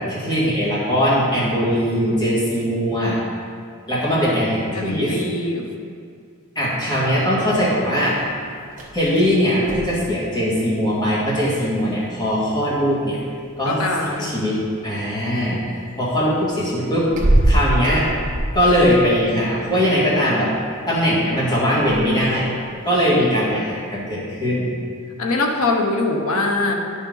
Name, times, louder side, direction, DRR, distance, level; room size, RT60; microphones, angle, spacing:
voice 1, 0.1-3.2 3.9-5.2 6.6-8.2 8.9-13.2 13.6-13.8 14.1-15.6 15.9-17.1 17.4-18.1 18.5-20.5 20.9-22.5 22.8-24.7, equal, 20° left, -8 dB, 2.0 m, -20 dB
voice 2, 4.7-5.6 13.6-14.4 25.2-26.7, left 2 dB, 80° left, 2 dB, 1.0 m, -22 dB
sound 1, 7.3-24.0, right 1 dB, 40° right, 1.2 m, -29 dB
10.5 x 5.5 x 4.0 m, 2.2 s
head